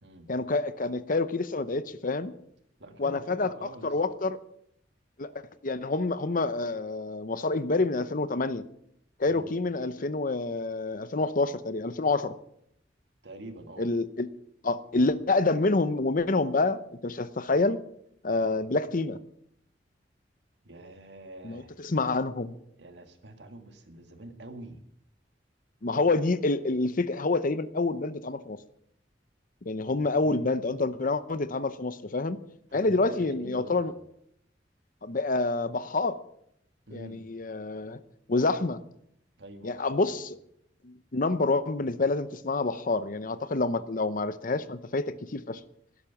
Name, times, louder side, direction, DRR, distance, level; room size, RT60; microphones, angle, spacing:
voice 1, 0.3-2.3 3.0-3.5 3.8-4.4 5.2-5.3 5.6-8.6 9.2-12.3 13.8-14.3 14.6-17.8 18.2-19.2 21.4-22.5 25.8-28.6 29.7-32.4 32.7-33.9 35.0-36.2 36.9-38.0 38.3-38.8 39.6-40.4 40.8-45.6, left 3 dB, 50° left, 13 dB, 0.8 m, -27 dB
voice 2, 2.8-4.0 9.3-9.5 13.2-13.9 18.3-18.5 20.6-21.7 22.8-24.8 29.9-30.0 30.2-30.6 32.7-34.0 36.9-37.3 39.4-40.3, right 1 dB, 70° right, 6 dB, 2.0 m, -46 dB
16.5 x 12.0 x 5.9 m, 0.73 s
head